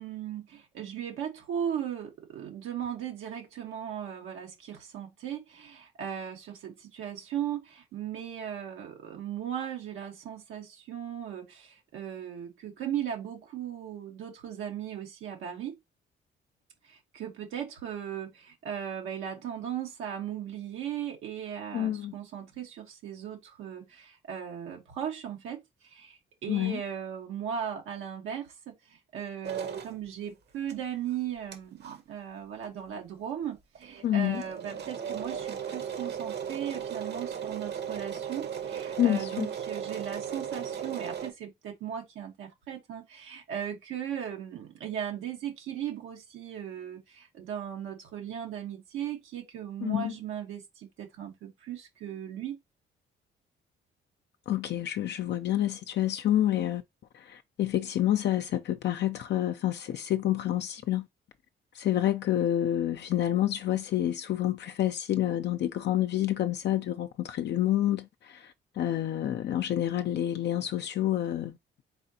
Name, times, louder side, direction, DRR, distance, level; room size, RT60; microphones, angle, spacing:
voice 1, 0.0-15.8 16.8-52.6, right 9 dB, 90° right, 1.2 m, -37 dB
voice 2, 21.7-22.1 26.5-26.8 34.0-34.4 39.0-39.5 49.8-50.1 54.5-56.8 57.3-61.1 61.8-68.1 68.8-71.5, left 12 dB, 60° left, 0.5 m, -28 dB
sound 1, 29.4-29.9 30.7-30.8 31.1-31.2 31.5-31.6 31.8-32.0 32.6-32.7 32.9-33.0 33.4-33.5 33.8-41.3, right 8 dB, 55° right, 1.0 m, -36 dB
4.1 x 3.8 x 2.8 m
cardioid pair, 90°, 20 cm